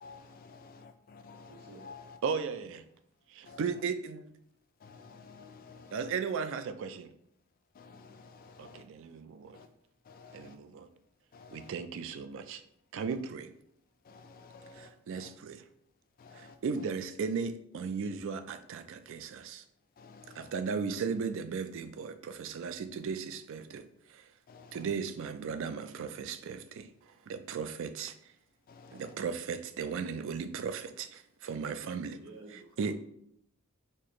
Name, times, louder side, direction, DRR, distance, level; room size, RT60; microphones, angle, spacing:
voice 1, 0.0-2.2 3.4-3.8 4.8-6.1 7.7-8.9 9.5-9.7 10.0-10.6 11.3-11.7 14.0-15.3 16.2-16.9 20.0-20.5 24.5-24.9 28.7-29.2, left 4 dB, 40° left, 9 dB, 0.3 m, -52 dB
voice 2, 1.5-1.9 31.6-32.9, right 3 dB, 85° right, -1 dB, 0.8 m, -52 dB
voice 3, 2.2-2.8 3.3-4.2 5.9-7.1 8.6-9.6 10.3-10.9 11.5-12.6 12.9-13.5 14.8-15.6 16.3-19.6 20.4-24.2 24.7-26.9 27.3-28.1 28.9-32.2 32.8-32.9, right 5 dB, 60° right, 11 dB, 0.3 m, -36 dB
4.4 x 2.4 x 2.9 m, 0.71 s
head